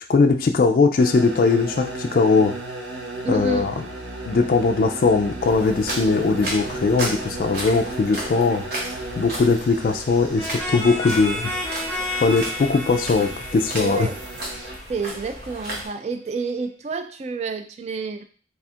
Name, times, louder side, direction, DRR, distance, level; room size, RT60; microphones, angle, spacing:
voice 1, 0.1-2.5 3.3-3.7 4.3-8.6 9.2-11.7 12.2-14.1, left 4 dB, 50° left, 5 dB, 0.3 m, -20 dB
sound 1, 1.0-14.8, right 2 dB, 85° right, 0.8 m, -36 dB
voice 2, 3.2-3.7 13.8-14.2 14.9-18.2, right 4 dB, 35° right, 7 dB, 0.3 m, -29 dB
sound 2, 5.4-15.9, right 1 dB, 55° right, 1.2 m, -34 dB
sound 3, 10.4-14.9, left 2 dB, 10° left, 0.9 m, -31 dB
3.4 x 2.4 x 4.2 m, 0.42 s
head